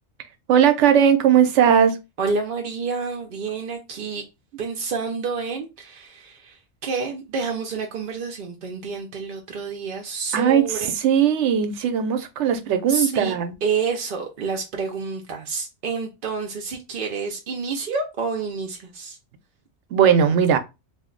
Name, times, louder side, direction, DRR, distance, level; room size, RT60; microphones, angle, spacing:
voice 1, 0.5-2.0 10.3-13.5 19.9-20.6, right 8 dB, 85° right, 0.9 m, -18 dB
voice 2, 2.2-4.2 4.6-10.9 12.9-13.3 13.6-19.2, right 5 dB, 55° right, 0.6 m, -29 dB
2.6 x 2.1 x 3.7 m
omnidirectional pair, 1.2 m